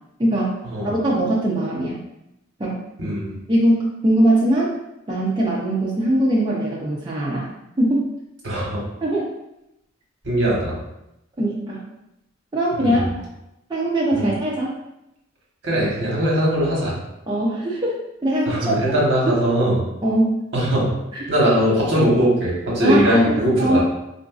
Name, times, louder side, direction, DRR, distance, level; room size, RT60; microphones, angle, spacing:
voice 1, 0.2-2.0 2.6-2.8 3.5-4.8 5.1-7.5 7.8-8.1 9.0-9.3 11.4-11.8 12.5-13.0 13.7-14.7 17.3-18.0 18.2-18.8 19.3-19.4 20.0-20.3 21.1-21.3 22.8-23.8, right 1 dB, 25° right, -5 dB, 0.4 m, -21 dB
voice 2, 3.0-3.4 8.4-8.8 10.2-10.8 12.8-13.1 14.1-14.3 15.6-17.0 18.5-19.8 20.5-20.9 21.3-23.8, right 1 dB, 65° right, -5 dB, 1.1 m, -20 dB
3.9 x 2.5 x 2.3 m, 0.87 s
head